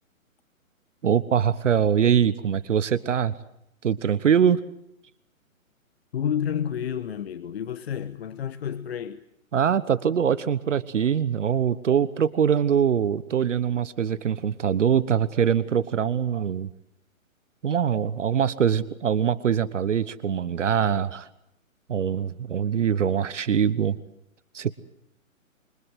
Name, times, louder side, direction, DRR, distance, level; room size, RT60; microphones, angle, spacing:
voice 1, 1.0-3.3 3.8-4.6 9.5-16.7 17.6-21.3 21.9-23.9 24.5-24.7, right 8 dB, 60° right, 1.3 m, -23 dB
voice 2, 6.1-9.2, left 9 dB, 45° left, 1.2 m, -30 dB
28.0 x 25.0 x 7.8 m
figure-of-eight pair, 135°, 42 cm